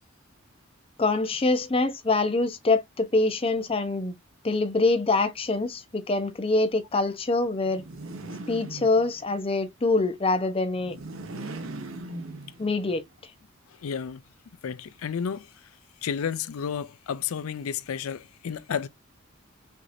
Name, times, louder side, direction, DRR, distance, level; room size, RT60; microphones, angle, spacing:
voice 1, 1.0-4.1 4.4-7.8 8.5-11.0 12.6-13.0, left 3 dB, 25° left, 0.6 m, -25 dB
sound 1, 7.7-9.4 10.7-12.9, right 2 dB, 80° right, 1.0 m, -39 dB
voice 2, 13.8-14.2 14.6-15.5 16.0-18.9, left 7 dB, 85° left, 0.4 m, -31 dB
5.9 x 2.8 x 2.5 m
head